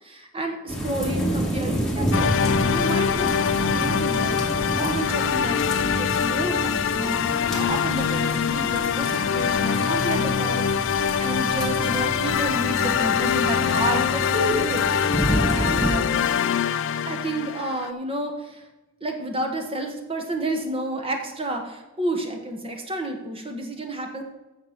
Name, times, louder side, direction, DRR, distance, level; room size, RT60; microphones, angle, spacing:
voice 1, 0.0-3.3 3.7-16.1 17.1-18.6 19.0-24.2, right 1 dB, 25° right, 4 dB, 1.3 m, -30 dB
sound 1, 0.7-15.9, equal, 5° left, 2.0 m, -29 dB
sound 2, 2.1-17.9, left 7 dB, 60° left, 0.4 m, -24 dB
8.5 x 6.8 x 5.9 m, 1.0 s
head